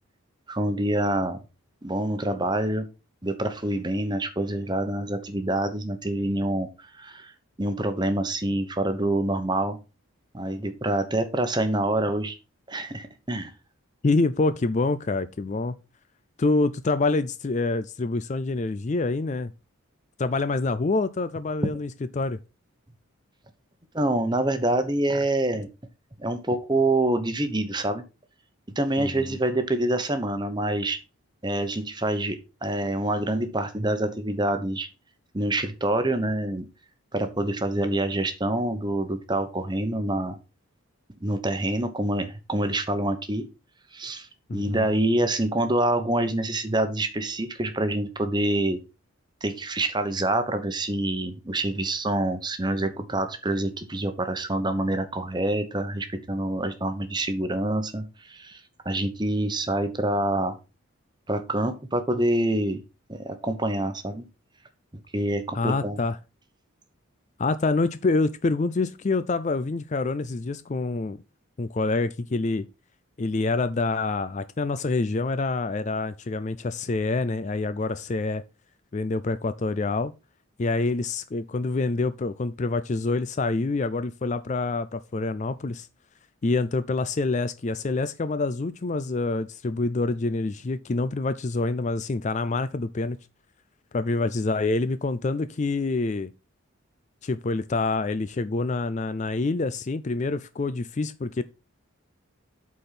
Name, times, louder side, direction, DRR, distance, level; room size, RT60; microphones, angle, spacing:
voice 1, 0.5-1.4 1.8-2.9 3.2-7.3 7.6-9.8 10.3-12.3 12.7-13.5 21.6-21.7 23.9-25.7 26.2-28.0 28.7-31.0 31.4-34.9 35.3-36.6 37.1-40.4 41.2-43.5 43.9-48.8 49.4-60.5 61.3-62.8 63.1-64.2 65.1-66.0, right 1 dB, 20° right, 1.0 m, -26 dB
voice 2, 14.0-15.8 16.4-19.5 20.2-22.4 29.0-29.4 44.5-44.9 65.5-66.2 67.4-71.2 71.6-72.7 73.2-78.4 78.9-80.1 80.6-85.9 86.4-93.2 93.9-96.3 97.2-101.4, left 3 dB, 35° left, 0.4 m, -26 dB
8.2 x 4.4 x 5.8 m
head